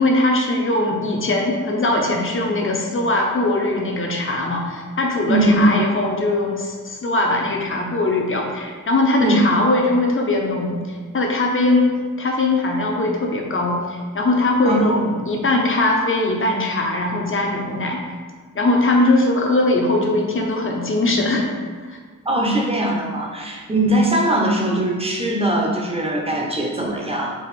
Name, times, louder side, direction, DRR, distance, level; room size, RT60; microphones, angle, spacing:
voice 1, 0.0-11.9 12.2-18.0 18.5-21.5 21.9-22.0, left 2 dB, 40° left, 1 dB, 0.8 m, -20 dB
voice 2, 5.3-5.7 9.2-9.4 14.7-15.0 22.2-27.3, right 1 dB, 20° right, -2 dB, 0.8 m, -20 dB
4.7 x 2.4 x 4.2 m, 1.5 s
cardioid pair, 85°, 33 cm